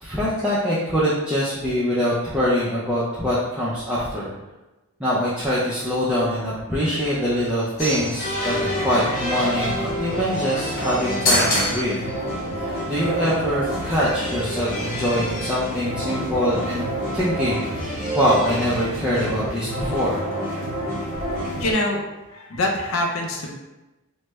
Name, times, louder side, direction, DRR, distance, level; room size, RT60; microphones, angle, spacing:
voice 1, 0.0-4.3 5.0-12.0 12.6-16.8 17.1-20.2, equal, 5° right, -10 dB, 0.4 m, -24 dB
sound 1, 5.8-19.5, right 1 dB, 70° right, 0.4 m, -39 dB
sound 2, 7.8-21.7, equal, 45° left, 1.2 m, -27 dB
voice 2, 21.5-22.0 22.3-23.5, left 1 dB, 70° left, 1 dB, 0.5 m, -24 dB
3.0 x 2.1 x 3.3 m, 1.1 s
head